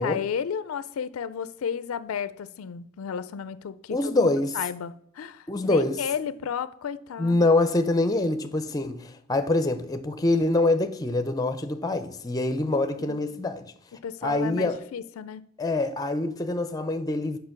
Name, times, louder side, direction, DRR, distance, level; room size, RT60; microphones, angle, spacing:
voice 1, 0.0-4.3 4.5-7.4 13.0-13.2 14.0-15.4, left 7 dB, 75° left, 0.4 m, -33 dB
voice 2, 3.9-4.6 5.5-6.0 7.2-13.7 14.2-14.8 15.6-17.4, left 2 dB, 15° left, 0.5 m, -25 dB
6.6 x 5.3 x 5.7 m
head